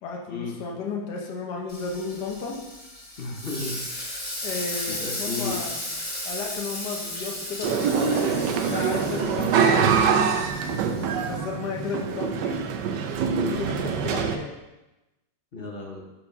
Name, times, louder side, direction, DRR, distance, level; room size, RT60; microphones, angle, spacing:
voice 1, 0.0-2.6 4.4-5.8 6.2-10.3 11.3-12.6 13.5-13.8 14.0-14.6, left 5 dB, 65° left, -1 dB, 1.5 m, -33 dB
Frying (food), 1.7-11.4, left 1 dB, 20° left, 2.2 m, -35 dB
voice 2, 3.2-3.8 5.0-5.6 13.3-13.6 15.5-16.0, left 4 dB, 40° left, -1 dB, 0.9 m, -33 dB
sound 1, 7.6-14.4, right 6 dB, 75° right, 1.2 m, -24 dB
5.2 x 4.9 x 5.3 m, 1.0 s
omnidirectional pair, 2.0 m